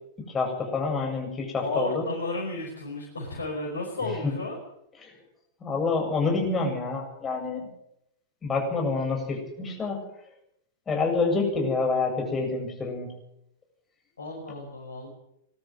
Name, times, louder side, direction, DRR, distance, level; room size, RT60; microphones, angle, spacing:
voice 1, 0.3-2.1 4.2-4.3 5.0-5.1 5.6-7.7 8.4-10.0 10.9-13.1, left 3 dB, 20° left, 1 dB, 7.7 m, -27 dB
voice 2, 1.6-4.6 14.2-15.1, left 2 dB, 85° left, -1 dB, 5.3 m, -33 dB
21.5 x 13.0 x 9.4 m, 0.77 s
hypercardioid pair, 100°, 0 cm